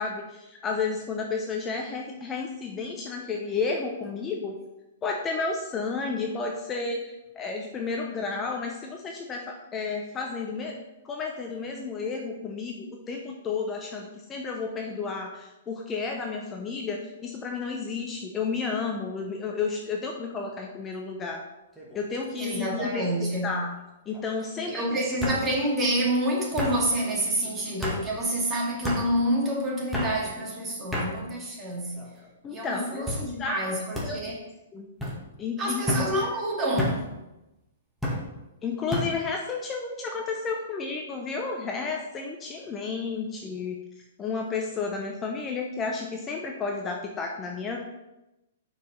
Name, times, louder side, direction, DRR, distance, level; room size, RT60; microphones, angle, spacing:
voice 1, 0.0-4.6 5.0-10.8 11.0-21.4 21.9-23.7 24.1-25.0 32.4-33.1 33.4-33.7 34.0-34.4 34.7-34.9 35.4-36.1 38.6-43.8 44.2-47.8, left 4 dB, 20° left, 1 dB, 0.8 m, -32 dB
sound 1, 21.8-22.1 22.5-23.1 24.1-24.2 25.2-25.4 26.6-26.8 27.8-28.0 28.8-29.0 29.9-30.1 30.9-31.1 31.9-32.3 33.1-33.3 33.9-34.1 35.0-35.2 35.9-36.1 36.8-37.0 38.0-38.2 38.9-39.1, left 1 dB, ahead, 1.9 m, -30 dB
voice 2, 22.4-23.6 24.7-32.0 32.5-34.4 35.6-37.1, right 1 dB, 20° right, -3 dB, 2.3 m, -28 dB
5.9 x 4.9 x 5.5 m, 0.96 s
hypercardioid pair, 135°, 0 cm